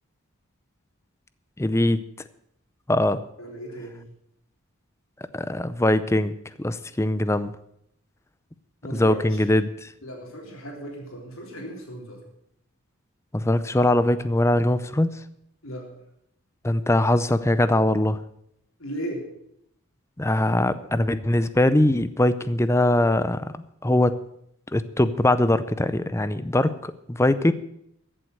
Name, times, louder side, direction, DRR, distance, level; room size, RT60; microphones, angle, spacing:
voice 1, 1.6-2.0 2.9-3.2 5.3-7.5 8.9-9.9 13.3-15.1 16.6-18.2 20.2-24.2 24.7-27.5, left 1 dB, 10° left, 14 dB, 0.5 m, -22 dB
voice 2, 3.4-4.1 8.8-9.5 10.0-12.2 15.6-15.9 18.8-19.3, right 1 dB, 65° left, 0 dB, 3.7 m, -36 dB
14.5 x 7.7 x 8.0 m, 0.76 s
head